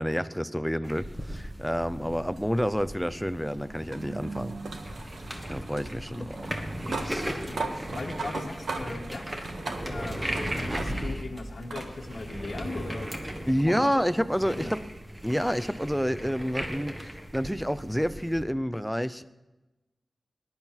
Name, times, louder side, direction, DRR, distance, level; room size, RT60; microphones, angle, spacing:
voice 1, 0.0-4.6 5.5-6.5 7.0-7.5 13.5-14.8 15.2-19.3, equal, ahead, 13 dB, 0.6 m, -29 dB
sound 1, 0.8-18.4, equal, 15° right, 1.6 m, -37 dB
sound 2, 2.4-11.2 11.7-11.9 13.2-13.3 16.2-16.3, right 3 dB, 90° right, 1.5 m, -38 dB
voice 2, 7.4-9.3 9.6-14.0 14.4-14.8, left 3 dB, 60° left, 1 dB, 1.4 m, -39 dB
20.0 x 10.5 x 4.5 m, 1.1 s
wide cardioid pair, 120°, 0 cm